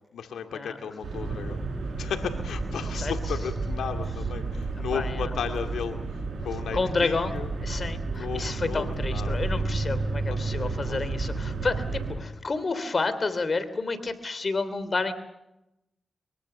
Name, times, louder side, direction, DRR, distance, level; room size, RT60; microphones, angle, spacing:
voice 1, 0.1-1.6 2.0-6.0 6.4-7.5 8.1-9.5 10.3-11.2, left 7 dB, 90° left, 6 dB, 2.3 m, -35 dB
sound 1, 1.0-12.2, right 3 dB, 80° right, 7.8 m, -31 dB
voice 2, 6.7-7.3 7.6-15.1, left 3 dB, 50° left, 13 dB, 3.1 m, -30 dB
23.5 x 23.0 x 6.9 m, 0.89 s
supercardioid pair, 45°, 0 cm